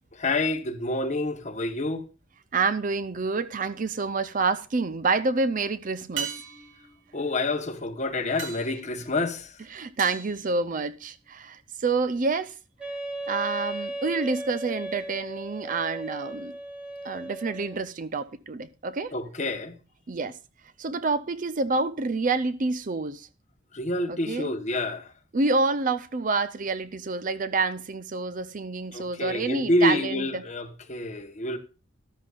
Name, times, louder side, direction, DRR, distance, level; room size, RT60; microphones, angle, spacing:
voice 1, 0.2-2.1 7.1-9.5 19.1-19.8 23.7-25.1 28.9-31.6, left 2 dB, 40° left, 1.2 m, -28 dB
voice 2, 2.5-6.3 9.7-12.5 13.3-16.5 17.0-19.1 20.1-20.4 20.8-23.3 24.1-24.5 25.3-30.4, right 3 dB, 45° right, 0.6 m, -28 dB
sound 1, 4.0-4.4 6.2-11.3 15.8-15.9, right 6 dB, 85° right, 2.9 m, -40 dB
Wind instrument woodwind instrument, 12.8-17.9, right 1 dB, 5° right, 1.6 m, -36 dB
13.0 x 13.0 x 2.5 m
head